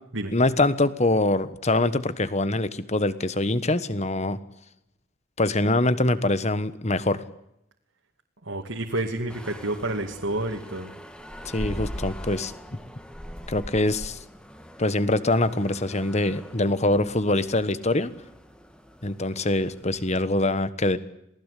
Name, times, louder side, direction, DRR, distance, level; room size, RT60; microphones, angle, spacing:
voice 1, 0.3-4.4 5.4-7.2 11.4-12.5 13.5-14.2 14.8-18.1 19.0-21.0, left 2 dB, 35° left, 15 dB, 1.3 m, -24 dB
voice 2, 8.5-10.9, right 1 dB, 70° right, 2 dB, 2.4 m, -29 dB
sound 1, 9.3-20.3, equal, 5° left, 1.9 m, -41 dB
27.5 x 19.0 x 8.4 m, 0.83 s
head